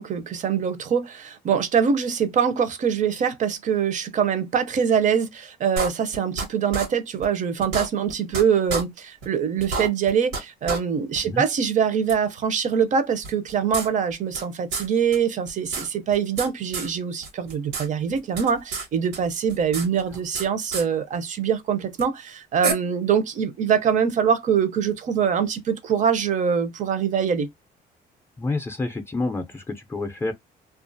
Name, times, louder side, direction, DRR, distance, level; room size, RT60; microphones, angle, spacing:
voice 1, 0.0-27.5, right 7 dB, 50° right, 0.6 m, -24 dB
sound 1, 5.8-6.5 6.7-6.9 7.2-7.3 7.6-8.4 8.7-8.8 9.2-9.3 9.6-10.4 10.7-10.8 11.1-11.2 12.1-12.2 13.2-14.4 14.7-14.9 15.1-15.2 15.5-16.5 16.7-16.9 17.2-17.9 18.1-18.9 19.1-20.4 20.7-20.8 22.0-22.1 22.6-22.7, right 4 dB, 90° right, 1.1 m, -29 dB
voice 2, 28.4-30.3, left 2 dB, 15° left, 0.5 m, -28 dB
2.4 x 2.4 x 2.5 m
cardioid pair, 110°, 17 cm